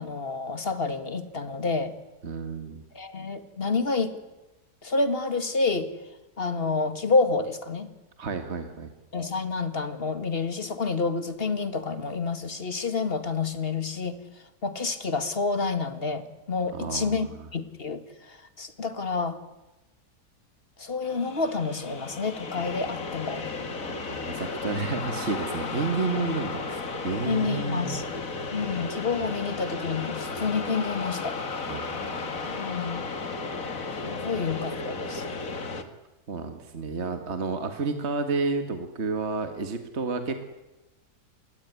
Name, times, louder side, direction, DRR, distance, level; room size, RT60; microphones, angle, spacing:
voice 1, 0.0-1.9 2.9-4.2 4.8-5.9 6.4-7.9 9.1-14.2 14.6-19.4 20.8-23.4 26.0-26.3 27.3-28.0 28.5-31.4 32.5-33.0 33.9-35.3, left 4 dB, 40° left, 11 dB, 2.2 m, -29 dB
voice 2, 2.2-2.8 8.2-8.9 16.7-17.2 23.8-27.9 31.7-32.5 36.3-40.5, right 4 dB, 45° right, 7 dB, 2.1 m, -31 dB
sound 1, 21.0-35.8, left 4 dB, 60° left, 2.3 m, -34 dB
27.5 x 20.5 x 9.6 m, 1.0 s
omnidirectional pair, 1.6 m